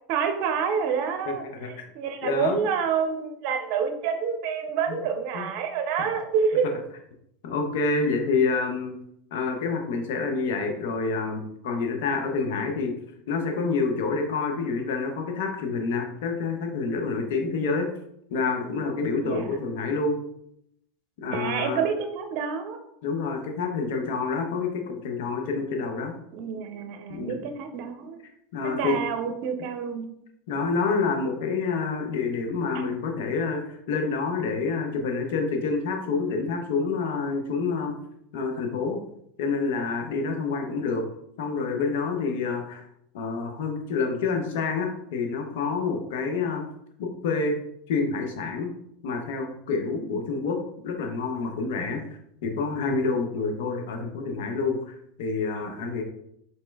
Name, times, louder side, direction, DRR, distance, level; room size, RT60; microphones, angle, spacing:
voice 1, 0.1-6.7 19.2-19.6 21.3-22.8 26.3-28.2 28.6-30.1 50.1-50.2, right 6 dB, 60° right, 6 dB, 0.6 m, -28 dB
voice 2, 1.3-1.7 2.2-2.6 4.9-5.0 5.3-5.5 7.4-9.0 9.3-12.9 13.3-17.9 18.3-20.2 21.2-21.8 23.0-26.1 27.1-27.5 28.5-29.0 30.5-38.0 38.3-39.0 39.4-41.1 41.4-42.8 43.1-46.6 47.0-47.6 47.9-48.7 49.0-50.6 50.8-52.0 52.4-56.0, left 4 dB, 70° left, 3 dB, 0.7 m, -28 dB
4.2 x 3.0 x 2.3 m, 0.76 s
hypercardioid pair, 95°, 0 cm